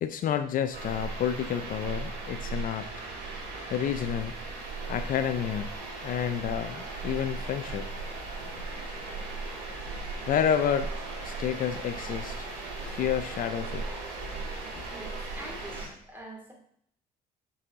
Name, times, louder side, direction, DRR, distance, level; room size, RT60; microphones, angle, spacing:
voice 1, 0.0-2.9 3.7-4.3 4.9-5.7 6.0-7.9 10.3-10.9 11.2-12.5 12.9-13.8, left 9 dB, 55° left, 9 dB, 0.5 m, -29 dB
sound 1, 0.7-15.9, right 3 dB, 75° right, 3.1 m, -37 dB
voice 2, 14.9-16.5, right 1 dB, 10° right, -1 dB, 2.5 m, -44 dB
8.1 x 5.6 x 3.7 m, 0.68 s
cardioid pair, 110°, 17 cm